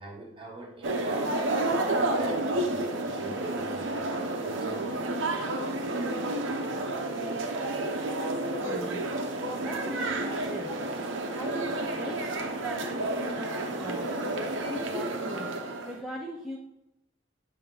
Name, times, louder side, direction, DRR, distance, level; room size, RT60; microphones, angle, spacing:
voice 1, 0.0-5.1, right 2 dB, 25° right, -2 dB, 1.2 m, -44 dB
sound 1, 0.8-16.0, right 2 dB, 70° right, 0.7 m, -30 dB
voice 2, 8.6-10.8 11.3-15.5 15.8-16.6, equal, ahead, -3 dB, 0.4 m, -40 dB
7.0 x 2.8 x 5.2 m, 0.85 s
head